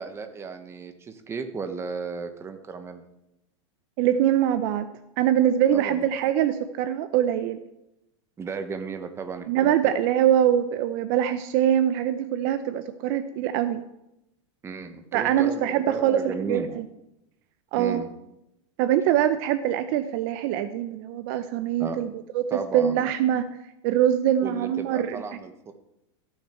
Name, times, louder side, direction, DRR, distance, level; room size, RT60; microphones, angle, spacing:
voice 1, 0.0-3.0 5.7-6.1 8.4-10.0 14.6-16.7 17.8-18.1 21.8-22.0 22.5-23.1 24.4-25.7, right 5 dB, 15° right, 8 dB, 0.9 m, -34 dB
voice 2, 4.0-4.9 5.2-7.6 9.5-13.8 15.1-16.8 17.7-18.0 18.8-23.5 23.8-25.2, right 10 dB, 50° right, 11 dB, 0.6 m, -23 dB
13.5 x 6.6 x 4.4 m, 0.87 s
supercardioid pair, 140°, 16 cm